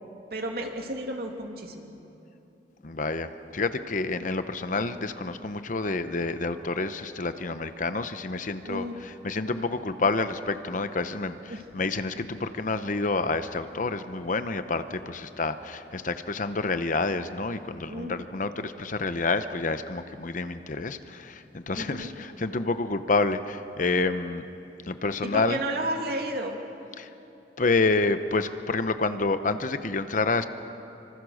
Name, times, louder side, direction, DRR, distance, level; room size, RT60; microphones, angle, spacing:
voice 1, 0.3-1.9 8.6-9.0 11.5-11.6 12.1-12.2 17.9-18.1 21.7-22.1 25.2-26.6, right 1 dB, 60° right, 2 dB, 2.6 m, -32 dB
voice 2, 2.8-24.5 24.8-25.6 27.0-27.1 27.6-30.5, left 3 dB, 45° left, 10 dB, 0.9 m, -28 dB
25.5 x 25.5 x 6.5 m, 2.9 s
head